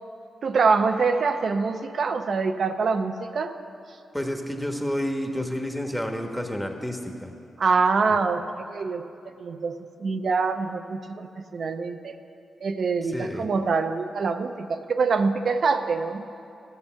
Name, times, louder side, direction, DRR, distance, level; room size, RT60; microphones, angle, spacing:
voice 1, 0.4-3.6 7.6-9.1 9.4-12.1 12.6-16.3, right 4 dB, 65° right, 7 dB, 0.6 m, -25 dB
voice 2, 4.1-7.3 13.0-13.5, equal, 5° left, 3 dB, 1.3 m, -30 dB
14.5 x 7.0 x 5.7 m, 2.6 s
cardioid pair, 65°, 0 cm